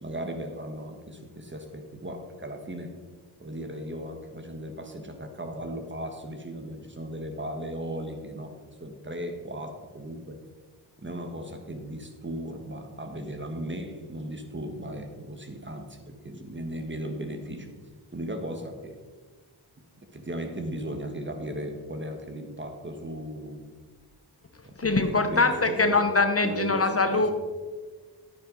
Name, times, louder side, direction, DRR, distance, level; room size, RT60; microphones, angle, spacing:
voice 1, 0.0-2.9 3.4-8.5 8.8-10.4 11.0-17.8 18.1-19.0 20.0-23.6 24.6-26.1 26.4-27.3, right 1 dB, 25° right, 5 dB, 1.4 m, -36 dB
voice 2, 24.8-27.3, left 3 dB, 35° left, 7 dB, 0.9 m, -23 dB
9.9 x 9.5 x 4.0 m, 1.4 s
wide cardioid pair, 70°, 42 cm